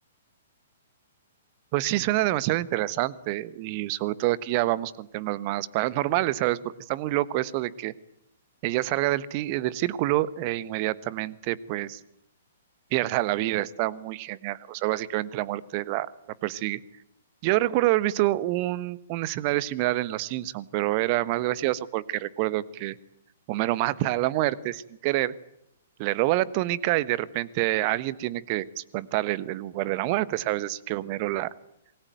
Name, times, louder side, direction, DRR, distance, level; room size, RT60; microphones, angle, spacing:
voice 1, 1.7-7.9 8.6-12.0 12.9-16.1 16.4-16.8 17.4-22.9 23.5-25.3 26.0-31.5, right 16 dB, 35° right, 18 dB, 1.2 m, -27 dB
27.5 x 20.5 x 9.2 m, 0.81 s
figure-of-eight pair, 115°, 0 cm